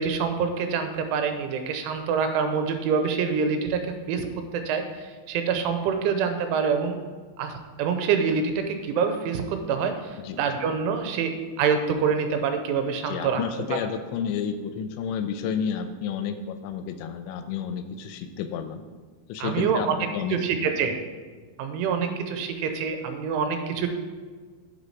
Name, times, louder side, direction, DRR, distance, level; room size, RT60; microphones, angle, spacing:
voice 1, 0.0-3.8 4.1-7.0 7.4-13.4 19.4-20.0 20.3-21.0 21.6-23.9, right 6 dB, 90° right, 6 dB, 3.2 m, -26 dB
voice 2, 13.1-18.8 19.3-19.9 20.1-20.8, left 7 dB, 80° left, 9 dB, 2.8 m, -31 dB
8.3 x 7.5 x 4.8 m, 1.5 s
omnidirectional pair, 5.6 m